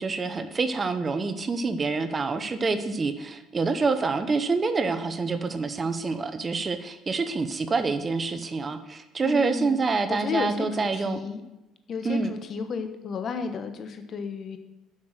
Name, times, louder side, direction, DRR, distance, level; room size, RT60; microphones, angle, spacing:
voice 1, 0.0-11.2 12.0-12.3, right 4 dB, 30° right, 10 dB, 0.7 m, -27 dB
voice 2, 9.2-9.8 10.1-11.4 11.9-14.6, left 5 dB, 45° left, 7 dB, 1.1 m, -32 dB
7.4 x 6.0 x 6.6 m, 0.98 s
supercardioid pair, 90°, 0 cm